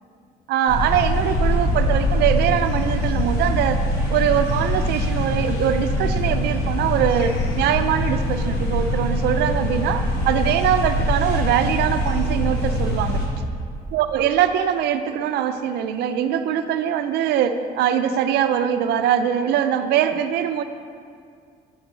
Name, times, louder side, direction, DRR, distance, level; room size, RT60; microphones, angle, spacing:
voice 1, 0.5-3.8 4.1-13.2 13.9-20.6, right 9 dB, 75° right, 9 dB, 0.5 m, -22 dB
sound 1, 0.7-13.3, equal, 70° left, 1.6 m, -23 dB
7.1 x 5.3 x 6.1 m, 2.2 s
cardioid pair, 110°, 17 cm